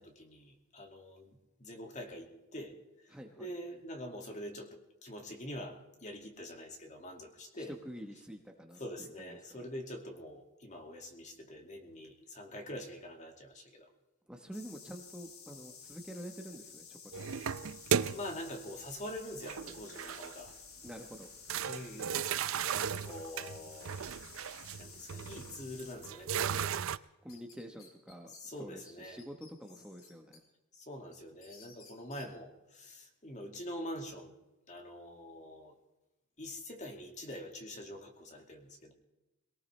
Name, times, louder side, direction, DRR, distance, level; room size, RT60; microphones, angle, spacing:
voice 1, 0.0-2.7 3.4-7.7 8.8-13.9 18.1-20.5 21.7-22.4 22.7-24.0 24.8-26.8 28.4-29.2 30.9-34.3 34.7-35.7 36.4-38.9, left 1 dB, 35° left, 3 dB, 2.2 m, -45 dB
voice 2, 3.1-3.5 7.6-9.7 14.3-17.4 20.8-21.3 27.2-30.4, equal, 5° right, 2 dB, 1.1 m, -48 dB
sound 1, 14.5-26.0, left 6 dB, 90° left, 2.7 m, -53 dB
sound 2, 17.1-18.5 19.4-20.5 20.9-21.0 21.5-27.0, right 7 dB, 70° right, 0.5 m, -35 dB
sound 3, 26.9-28.4 28.9-29.0 29.2-30.4 30.8-32.3, left 4 dB, 70° left, 3.6 m, -58 dB
22.5 x 18.0 x 3.3 m, 0.99 s
head